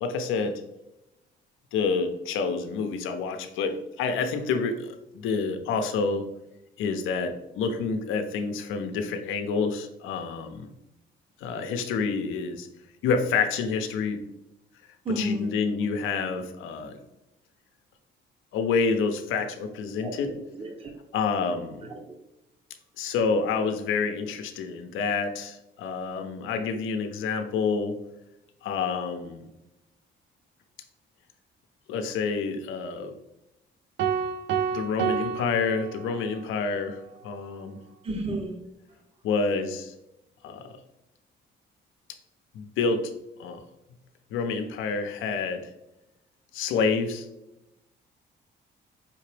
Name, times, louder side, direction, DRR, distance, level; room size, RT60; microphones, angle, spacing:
voice 1, 0.0-0.5 1.7-6.3 6.8-10.7 11.4-12.7 13.0-14.2 15.2-17.0 18.5-20.3 21.1-21.9 23.0-28.0 28.6-29.5 31.9-33.1 34.7-37.8 39.2-39.9 40.4-40.8 42.5-43.1 43.4-43.6 44.3-45.7 46.5-47.3, left 5 dB, 90° left, 6 dB, 0.6 m, -28 dB
voice 2, 15.0-15.5 20.0-20.1 20.5-20.9 21.8-22.2 38.0-38.6, right 2 dB, 30° right, 2 dB, 0.7 m, -32 dB
sound 1, 34.0-36.5, right 7 dB, 70° right, 0.4 m, -29 dB
5.1 x 2.9 x 3.2 m, 0.90 s
cardioid pair, 90°, 20 cm